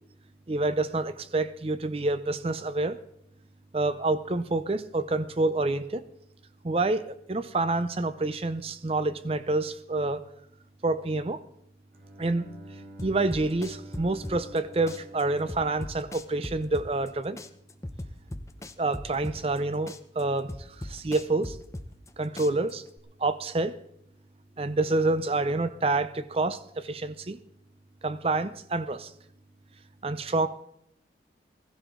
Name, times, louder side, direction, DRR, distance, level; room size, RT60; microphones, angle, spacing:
voice 1, 0.5-3.0 3.7-6.1 6.6-10.2 10.8-11.4 12.2-12.5 13.0-17.4 18.8-20.5 20.8-21.6 22.2-22.8 23.2-23.8 24.6-27.4 28.0-29.1 30.0-30.5, right 2 dB, 35° right, 0.6 m, -28 dB
Bowed string instrument, 11.9-16.8, right 1 dB, 55° right, 5.8 m, -48 dB
sound 1, 13.0-14.6 14.9-17.1 17.4-19.6 19.9-22.1 22.4-23.0, left 1 dB, 15° left, 0.7 m, -38 dB
16.0 x 15.5 x 3.8 m
head